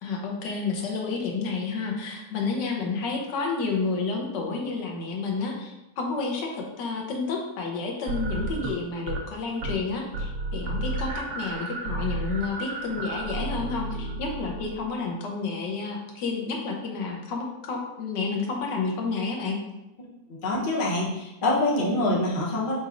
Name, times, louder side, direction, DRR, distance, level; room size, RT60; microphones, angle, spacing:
voice 1, 0.0-19.6, left 4 dB, 80° left, 0 dB, 1.4 m, -30 dB
sound 1, 8.1-9.3 9.6-9.9 10.1-14.9, right 2 dB, 80° right, 1.4 m, -32 dB
voice 2, 20.4-22.8, left 2 dB, 40° left, -3 dB, 0.7 m, -25 dB
4.2 x 3.9 x 2.5 m, 0.96 s
omnidirectional pair, 1.9 m